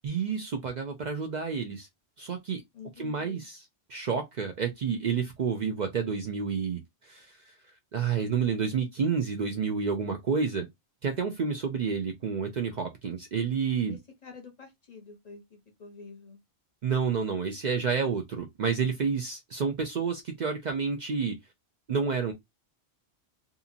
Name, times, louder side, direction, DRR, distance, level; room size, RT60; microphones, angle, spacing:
voice 1, 0.0-1.9 2.2-2.6 3.0-7.4 7.9-10.7 11.0-14.0 16.8-21.4 21.9-22.3, right 6 dB, 55° right, 0.5 m, -29 dB
voice 2, 2.7-3.5 13.9-16.4, left 5 dB, 45° left, 0.7 m, -48 dB
2.7 x 2.6 x 2.5 m
omnidirectional pair, 1.1 m